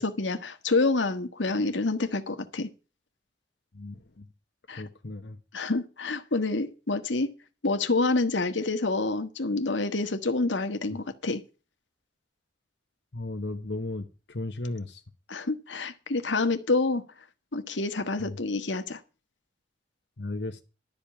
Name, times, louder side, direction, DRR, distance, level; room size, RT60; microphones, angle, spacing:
voice 1, 0.0-2.7 4.7-4.8 5.5-7.3 7.6-11.4 15.3-17.0 17.5-19.0, left 3 dB, 90° left, 1.4 m, -27 dB
voice 2, 3.7-4.3 4.8-5.4 13.1-15.0 18.2-18.4 20.2-20.6, left 2 dB, 70° left, 1.1 m, -35 dB
12.0 x 5.3 x 8.6 m
head